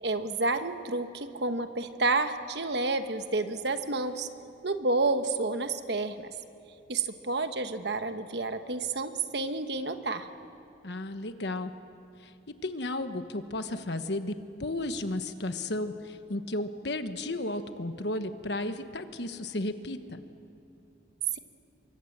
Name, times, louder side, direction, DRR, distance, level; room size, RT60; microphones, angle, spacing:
voice 1, 0.0-4.3 4.6-6.3 6.9-10.3, right 3 dB, 65° right, 9 dB, 1.3 m, -30 dB
voice 2, 10.8-11.7 12.2-14.3 14.6-20.2, left 2 dB, 70° left, 9 dB, 1.2 m, -34 dB
28.0 x 24.0 x 7.4 m, 2.7 s
head